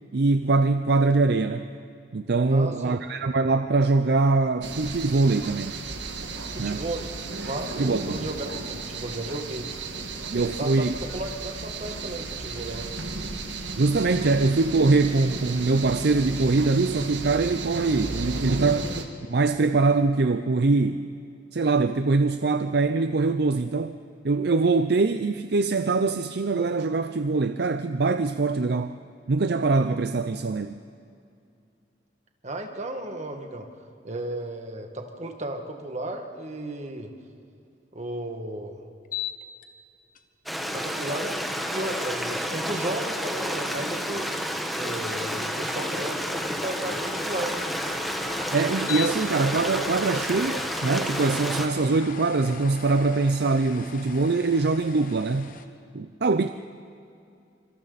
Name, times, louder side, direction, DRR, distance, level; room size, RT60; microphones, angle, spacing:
voice 1, 0.1-1.7 2.1-5.7 6.6-6.8 7.8-8.0 10.3-10.9 13.8-18.9 19.3-21.1 21.5-24.0 24.2-29.0 29.3-30.8 48.5-55.5 55.9-56.5, right 3 dB, 65° right, 9 dB, 0.6 m, -23 dB
voice 2, 2.5-3.0 6.5-9.7 10.3-12.9 13.5-13.6 32.4-33.7 34.0-37.1 37.9-38.8 40.7-47.6, right 1 dB, 40° right, 4 dB, 2.0 m, -34 dB
sound 1, 4.6-19.0, right 3 dB, 85° right, 1.8 m, -34 dB
sound 2, 39.0-39.6 40.1-40.2 45.4-55.7, left 6 dB, 50° left, 1.2 m, -39 dB
Stream, 40.5-51.7, equal, ahead, 1.3 m, -30 dB
26.5 x 26.0 x 4.2 m, 2.5 s
head